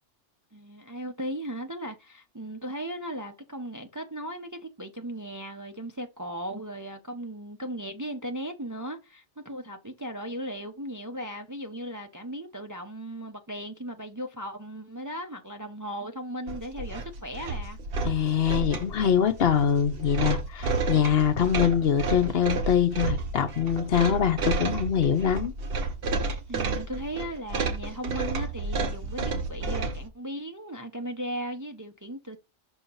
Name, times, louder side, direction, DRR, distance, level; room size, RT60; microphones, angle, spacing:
voice 1, 0.5-17.8 26.5-32.4, right 1 dB, 25° right, 0.5 m, -37 dB
sound 1, 16.5-30.1, right 3 dB, 55° right, 1.0 m, -31 dB
voice 2, 18.0-25.5, left 8 dB, 60° left, 0.9 m, -24 dB
6.2 x 2.9 x 5.4 m
omnidirectional pair, 1.2 m